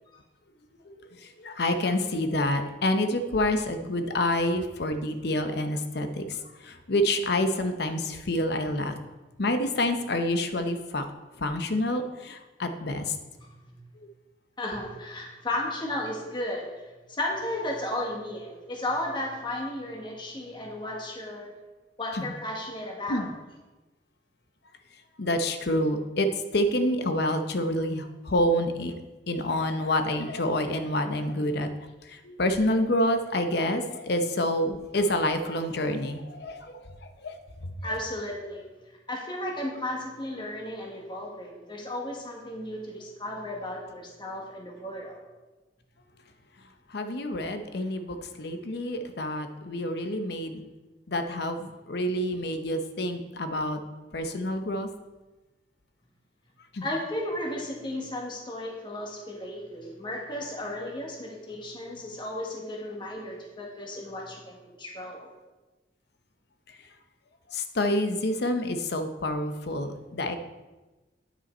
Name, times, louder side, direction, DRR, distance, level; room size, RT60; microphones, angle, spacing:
voice 1, 0.9-8.9 9.4-11.0 11.4-13.1 22.1-22.3 23.1-23.3 25.2-28.9 29.3-31.7 32.0-37.9 46.9-50.6 51.1-53.8 54.1-54.9 56.7-56.9 67.5-70.4, left 1 dB, 65° left, 8 dB, 0.8 m, -28 dB
voice 2, 13.4-13.8 14.6-21.5 22.0-23.3 37.8-38.7 39.1-45.2 56.8-65.3, left 1 dB, 25° left, -1 dB, 1.4 m, -34 dB
9.7 x 5.7 x 4.3 m, 1.1 s
head